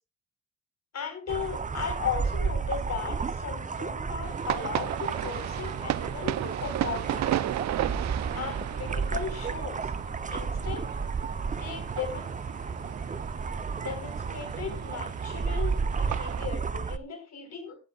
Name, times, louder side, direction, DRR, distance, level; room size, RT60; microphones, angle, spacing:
voice 1, 0.9-7.3 7.8-7.9 8.3-9.9 10.3-10.9 11.6-12.3 13.7-17.8, left 6 dB, 60° left, 7 dB, 4.7 m, -36 dB
sound 1, 1.3-17.0, right 5 dB, 25° right, 0.9 m, -32 dB
sound 2, 4.2-16.5, right 13 dB, 65° right, 0.6 m, -35 dB
17.5 x 11.0 x 2.5 m, 0.30 s
cardioid pair, 90°, 30 cm